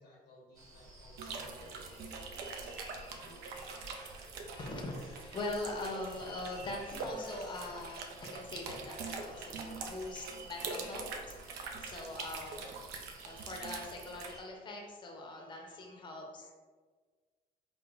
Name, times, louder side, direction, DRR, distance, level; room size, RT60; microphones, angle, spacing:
voice 1, 0.0-3.6 3.9-4.0, left 2 dB, 85° left, -4 dB, 0.8 m, -59 dB
sound 1, 0.5-14.4, right 1 dB, 20° right, 0.9 m, -54 dB
sound 2, 1.2-14.3, right 4 dB, 75° right, 0.5 m, -44 dB
voice 2, 2.5-12.7 13.2-16.5, left 2 dB, 25° left, 0 dB, 0.6 m, -43 dB
4.6 x 2.0 x 2.4 m, 1.5 s
cardioid pair, 110°, 17 cm